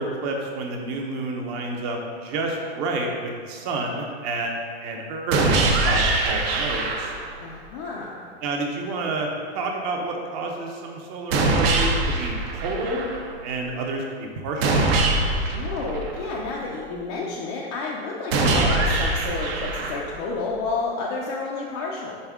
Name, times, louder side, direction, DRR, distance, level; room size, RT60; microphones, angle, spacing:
voice 1, 0.0-4.5 4.8-7.1 8.4-13.1 13.4-14.8, right 2 dB, 35° right, 1 dB, 0.8 m, -29 dB
sound 1, 5.3-7.3 11.3-13.3 14.6-16.6 18.3-20.3, right 2 dB, 60° right, 0.9 m, -23 dB
voice 2, 7.4-8.3 15.5-22.2, left 3 dB, 25° left, -4 dB, 0.4 m, -30 dB
5.4 x 5.2 x 3.6 m, 2.1 s
supercardioid pair, 160°, 33 cm